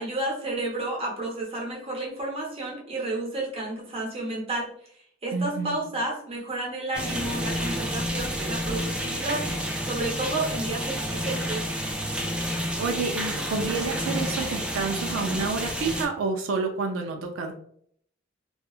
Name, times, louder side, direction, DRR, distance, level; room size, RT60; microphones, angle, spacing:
voice 1, 0.0-4.7 5.2-9.4 9.8-11.6, right 2 dB, 30° right, -2 dB, 0.8 m, -31 dB
voice 2, 5.3-5.8 12.8-17.5, right 4 dB, 85° right, 3 dB, 0.4 m, -29 dB
sound 1, 6.9-16.1, equal, 5° right, 0.3 m, -30 dB
2.8 x 2.3 x 2.3 m, 0.63 s
head